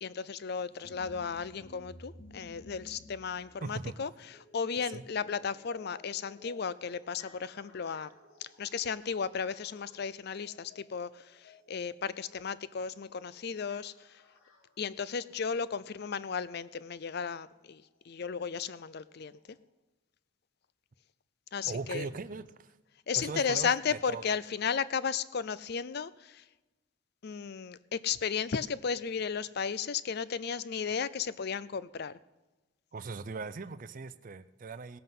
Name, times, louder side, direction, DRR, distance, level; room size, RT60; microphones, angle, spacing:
voice 1, 0.0-8.1 8.4-14.2 14.8-19.3 21.5-22.1 23.1-26.4 27.2-32.2, left 6 dB, 50° left, 17 dB, 0.5 m, -34 dB
sound 1, 0.7-16.6 17.8-17.9 18.7-18.8 19.5-19.6, left 2 dB, 85° left, 2.2 m, -56 dB
voice 2, 3.6-4.0 4.9-5.0 21.7-22.8 23.1-24.2 32.9-35.0, right 4 dB, 40° right, 13 dB, 0.4 m, -39 dB
18.5 x 7.8 x 5.5 m, 1.1 s
head